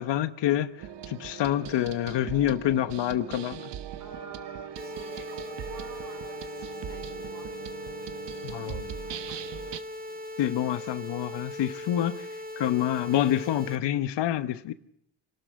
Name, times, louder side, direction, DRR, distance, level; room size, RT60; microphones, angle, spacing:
voice 1, 0.0-3.7 8.4-8.9 10.4-12.3 12.6-14.7, left 12 dB, 75° left, 1.1 m, -27 dB
sound 1, 0.8-9.8, right 10 dB, 75° right, 1.3 m, -40 dB
voice 2, 4.0-7.5 10.1-10.2, right 4 dB, 50° right, 3.9 m, -46 dB
sound 2, 4.8-13.8, left 1 dB, 20° right, 2.2 m, -39 dB
26.5 x 12.5 x 9.3 m
supercardioid pair, 60°, 42 cm